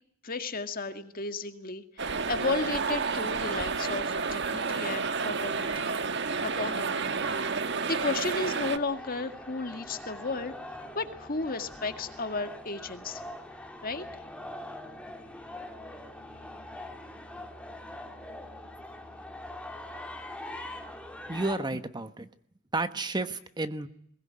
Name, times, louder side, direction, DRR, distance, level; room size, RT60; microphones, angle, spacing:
voice 1, 0.2-5.9 6.4-7.0 7.9-10.5 10.9-13.2 13.8-14.0, left 3 dB, 45° left, 8 dB, 2.1 m, -33 dB
sound 1, 2.0-8.8, right 4 dB, 60° right, 1.4 m, -30 dB
sound 2, 8.6-21.6, left 1 dB, 5° left, 3.3 m, -43 dB
voice 2, 21.3-22.3 22.7-23.9, right 2 dB, 20° right, 10 dB, 1.1 m, -31 dB
22.0 x 20.0 x 9.7 m, 0.70 s
head